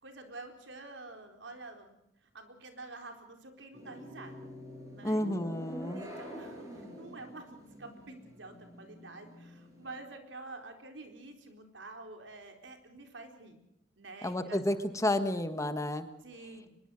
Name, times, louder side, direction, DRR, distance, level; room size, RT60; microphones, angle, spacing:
voice 1, 0.0-2.0 2.3-4.5 4.9-5.2 5.9-13.6 14.0-14.9 16.2-16.8, right 2 dB, 70° right, 5 dB, 4.3 m, -48 dB
sound 1, 3.7-10.0, equal, 15° right, 6.7 m, -47 dB
voice 2, 5.0-6.0 14.2-16.1, left 1 dB, 15° left, 9 dB, 1.4 m, -31 dB
24.0 x 21.5 x 6.4 m, 0.84 s
head